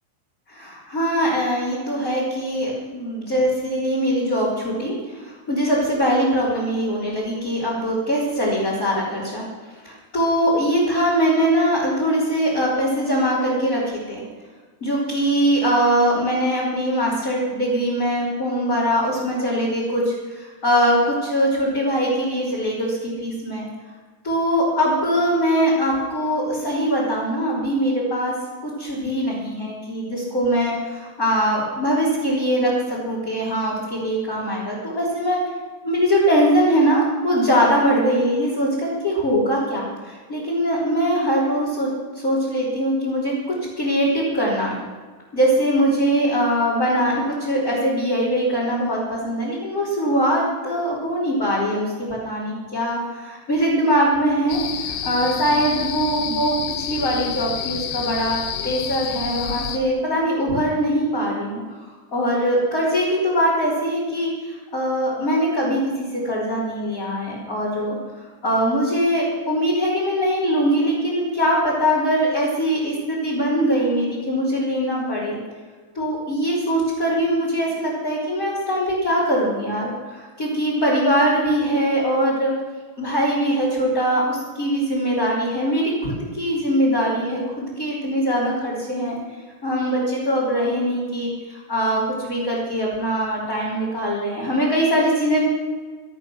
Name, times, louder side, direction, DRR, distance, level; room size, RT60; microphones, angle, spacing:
voice 1, 0.5-9.4 9.8-14.2 14.8-23.7 24.2-28.3 28.6-35.4 35.8-41.9 42.1-44.8 45.3-61.6 62.1-75.4 75.9-82.5 83.0-89.2 89.6-95.4, equal, 20° left, -8 dB, 3.5 m, -22 dB
sound 1, 54.5-59.8, left 9 dB, 90° left, 3.4 m, -29 dB
24.5 x 8.7 x 6.2 m, 1.4 s
omnidirectional pair, 5.2 m